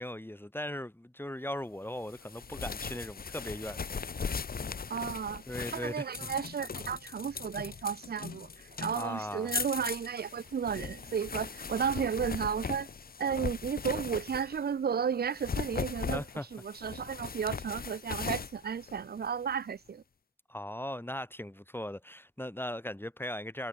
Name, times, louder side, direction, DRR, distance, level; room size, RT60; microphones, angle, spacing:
voice 1, 0.0-3.9 5.5-6.1 8.9-9.6 16.1-16.5 20.5-23.7, left 1 dB, 15° left, 2.0 m, -38 dB
sound 1, 2.1-14.7 15.2-19.6, left 5 dB, 70° left, 0.9 m, -39 dB
voice 2, 4.9-5.4 5.7-12.9 13.2-16.2 16.5-20.0, right 7 dB, 85° right, 0.6 m, -33 dB
sound 2, 8.4-13.1, right 3 dB, 55° right, 2.5 m, -60 dB
cardioid pair, 45°, 16 cm